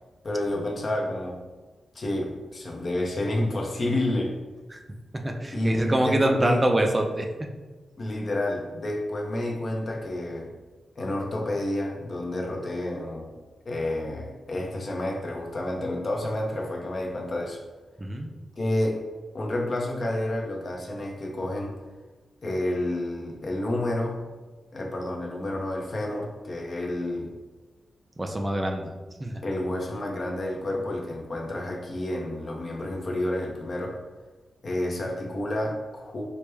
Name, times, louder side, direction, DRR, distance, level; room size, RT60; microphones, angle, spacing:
voice 1, 0.2-1.4 1.9-4.4 5.5-6.6 8.0-10.5 11.0-13.3 13.7-17.6 18.6-19.0 19.3-21.8 22.4-24.2 24.7-27.3 29.4-34.0 34.6-36.2, left 1 dB, 35° left, 0 dB, 0.6 m, -29 dB
voice 2, 5.1-7.5 18.0-18.3 28.2-28.9 29.2-29.4, right 1 dB, 15° right, 3 dB, 0.3 m, -25 dB
4.5 x 2.1 x 3.3 m, 1.3 s
wide cardioid pair, 145°, 0 cm